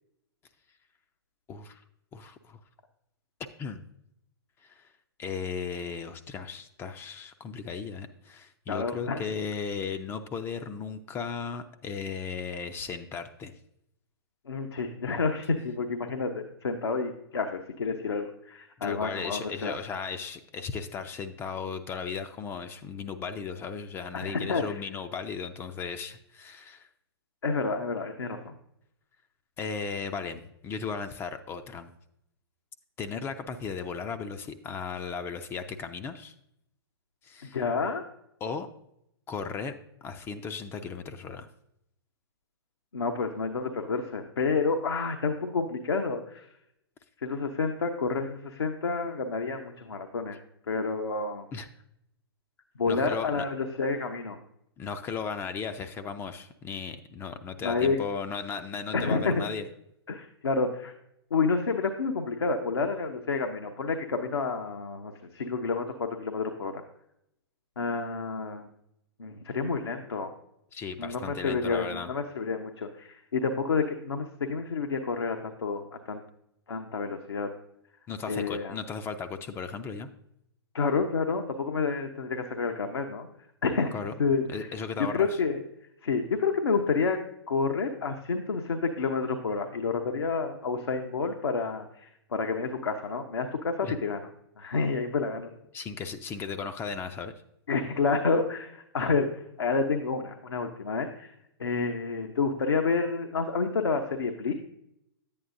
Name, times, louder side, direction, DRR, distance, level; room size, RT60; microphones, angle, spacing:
voice 1, 1.5-1.8 2.1-2.6 3.6-3.9 4.6-4.9 5.2-13.5 18.8-26.9 29.6-31.9 33.0-36.3 37.2-37.6 38.4-38.7 39.3-39.7 40.0-41.5 51.5-51.7 52.9-53.5 54.8-59.7 70.7-72.1 78.1-80.1 83.9-84.1 84.5-85.4 93.8-94.0 95.7-97.3, left 5 dB, 15° left, 8 dB, 0.5 m, -36 dB
voice 2, 8.7-9.2 14.5-19.8 24.1-24.6 27.4-28.5 37.5-38.0 42.9-46.5 47.2-50.4 50.7-51.5 52.8-54.4 57.6-58.0 58.9-59.4 60.1-60.9 61.3-66.8 67.8-68.7 69.2-70.3 71.0-76.2 76.7-77.5 78.3-78.8 80.7-83.3 83.6-83.9 84.2-84.7 85.1-85.6 86.0-87.2 87.5-94.2 94.6-95.5 97.7-101.3 101.6-104.5, left 4 dB, 70° left, 4 dB, 0.8 m, -29 dB
10.5 x 8.7 x 2.6 m, 0.77 s
figure-of-eight pair, 115°, 14 cm